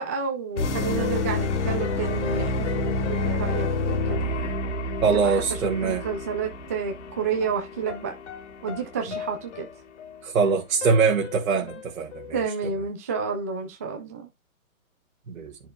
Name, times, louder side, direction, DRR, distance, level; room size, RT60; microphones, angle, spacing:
voice 1, 0.0-4.2 5.1-5.4 5.8-8.1 8.6-9.7 12.3-14.3, right 5 dB, 10° right, 0.4 m, -30 dB
sound 1, 0.6-12.3, left 3 dB, 55° left, 2.0 m, -29 dB
voice 2, 5.0-6.0 10.2-12.4 15.3-15.6, right 5 dB, 70° right, 1.8 m, -23 dB
10.5 x 6.3 x 2.2 m
hypercardioid pair, 130°, 42 cm